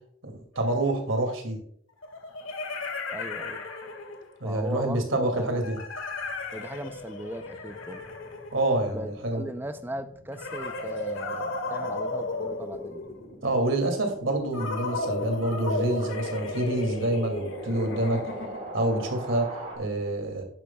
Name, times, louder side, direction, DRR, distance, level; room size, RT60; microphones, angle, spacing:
voice 1, 0.2-1.6 4.4-5.8 8.5-9.4 13.4-18.2 18.7-20.4, right 1 dB, 80° right, 4 dB, 2.4 m, -27 dB
sound 1, 0.5-0.6 2.0-4.4 5.6-9.1 10.3-13.4 14.5-18.8, left 2 dB, 85° left, 1.8 m, -34 dB
voice 2, 3.1-3.7 4.4-5.7 6.5-8.0 8.9-13.0, right 1 dB, 10° right, 10 dB, 0.5 m, -38 dB
sound 2, 5.9-19.8, right 1 dB, 40° right, 3.3 m, -43 dB
11.0 x 10.0 x 2.3 m, 0.64 s
head